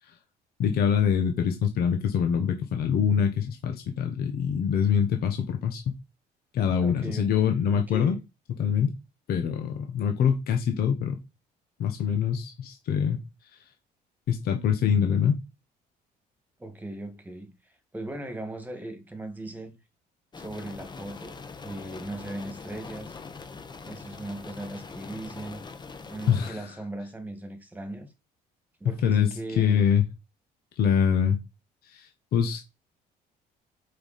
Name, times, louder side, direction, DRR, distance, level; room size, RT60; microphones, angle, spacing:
voice 1, 0.6-6.0 6.5-8.1 8.6-8.9 9.3-11.2 11.8-13.2 14.3-15.4 26.3-26.6 28.8-29.3 29.6-30.0 30.8-31.4 31.9-32.6, left 7 dB, 65° left, 1.3 m, -24 dB
voice 2, 6.8-8.2 16.6-19.7 20.4-23.2 23.8-25.7 26.1-28.1 28.8-29.9, right 1 dB, 10° right, 2.0 m, -38 dB
sound 1, 20.3-26.5, left 4 dB, 25° left, 1.1 m, -42 dB
6.9 x 5.6 x 4.3 m
cardioid pair, 110°, 17 cm